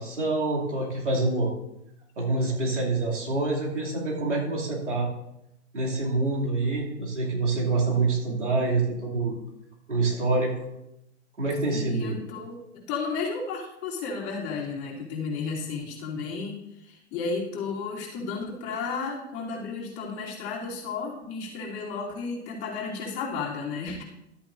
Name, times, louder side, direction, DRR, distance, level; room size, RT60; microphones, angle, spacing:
voice 1, 0.0-1.5 2.2-5.1 5.7-9.3 9.9-10.5 11.4-12.2, right 3 dB, 90° right, -3 dB, 2.7 m, -26 dB
voice 2, 11.7-24.0, left 4 dB, 40° left, -3 dB, 3.1 m, -33 dB
13.0 x 8.7 x 2.6 m, 0.84 s
hypercardioid pair, 105°, 35 cm